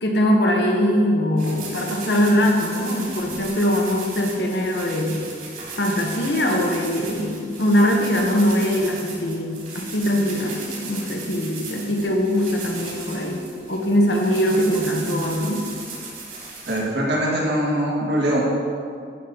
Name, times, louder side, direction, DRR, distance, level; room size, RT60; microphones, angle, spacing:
voice 1, 0.0-5.2 5.8-15.6, equal, 70° left, 0 dB, 1.5 m, -21 dB
sound 1, 1.4-16.8, right 4 dB, 50° right, 2.9 m, -37 dB
voice 2, 16.7-18.4, right 1 dB, 70° right, -4 dB, 2.3 m, -22 dB
11.5 x 4.1 x 8.0 m, 2.2 s
head